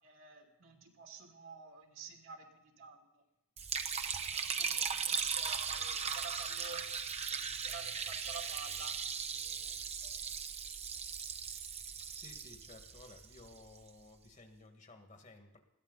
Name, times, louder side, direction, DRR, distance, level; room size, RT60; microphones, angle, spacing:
voice 1, 0.0-3.2 4.3-7.0 7.3-9.0 9.3-10.1 10.6-10.7, right 5 dB, 70° right, 1 dB, 3.0 m, -51 dB
Liquid, 3.6-13.8, right 6 dB, 30° right, 0.8 m, -38 dB
voice 2, 12.1-15.6, left 2 dB, 40° left, 4 dB, 2.0 m, -56 dB
21.0 x 15.5 x 4.1 m, 0.88 s
head